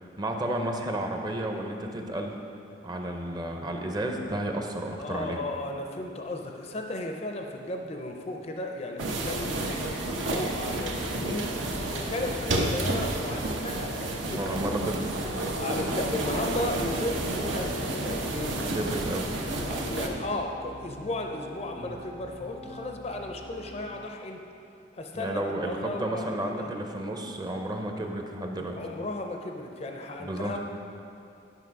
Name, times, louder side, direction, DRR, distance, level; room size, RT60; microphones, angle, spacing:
voice 1, 0.0-2.3 2.8-5.4 14.3-15.0 18.7-19.3 25.1-28.8 30.2-30.6, right 1 dB, 20° right, 2 dB, 0.6 m, -32 dB
voice 2, 5.0-11.5 11.9-14.9 15.6-18.6 19.7-24.4 24.9-26.3 26.6-26.7 28.8-30.6, left 1 dB, 35° left, 3 dB, 0.5 m, -35 dB
sound 1, 9.0-20.1, right 1 dB, 75° right, 0.9 m, -30 dB
sound 2, 12.0-23.8, equal, 40° right, 1.0 m, -46 dB
11.0 x 5.6 x 4.7 m, 2.7 s
head